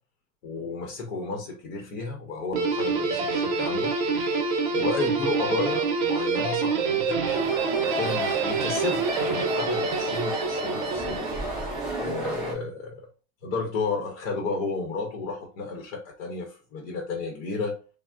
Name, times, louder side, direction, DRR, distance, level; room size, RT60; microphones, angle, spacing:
voice 1, 0.4-3.9 4.7-7.3 7.8-11.7 12.0-13.1 13.4-17.7, left 4 dB, 60° left, 2 dB, 0.8 m, -32 dB
Guitar, 2.5-11.9, right 4 dB, 45° right, 0.7 m, -27 dB
sound 1, 7.3-12.5, right 1 dB, ahead, 0.5 m, -33 dB
3.3 x 2.0 x 2.3 m, 0.34 s
supercardioid pair, 150°, 41 cm